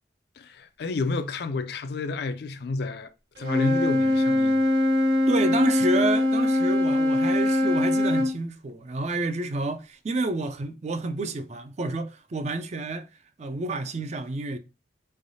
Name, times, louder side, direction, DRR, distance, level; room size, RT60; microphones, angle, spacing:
voice 1, 0.4-3.1 3.4-4.6, left 3 dB, 60° left, 0.4 m, -30 dB
Wind instrument woodwind instrument, 3.4-8.3, left 1 dB, 60° right, 1.3 m, -22 dB
voice 2, 5.3-13.1 13.4-14.6, right 2 dB, 40° right, 0.4 m, -29 dB
4.5 x 3.3 x 2.7 m
head